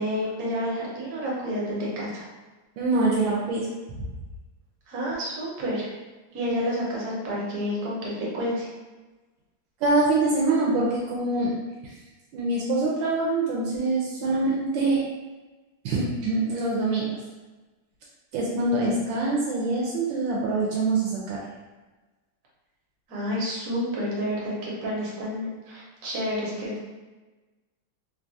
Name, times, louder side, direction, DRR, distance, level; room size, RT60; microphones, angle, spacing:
voice 1, 0.0-2.3 4.9-5.9 6.3-8.7 23.1-26.9, equal, 60° right, -5 dB, 1.2 m, -29 dB
voice 2, 2.8-3.7 9.8-11.5 11.8-11.9 12.3-15.0 15.8-17.1 18.3-21.4, right 2 dB, 80° right, -4 dB, 1.3 m, -24 dB
3.3 x 2.3 x 2.5 m, 1.2 s
omnidirectional pair, 2.1 m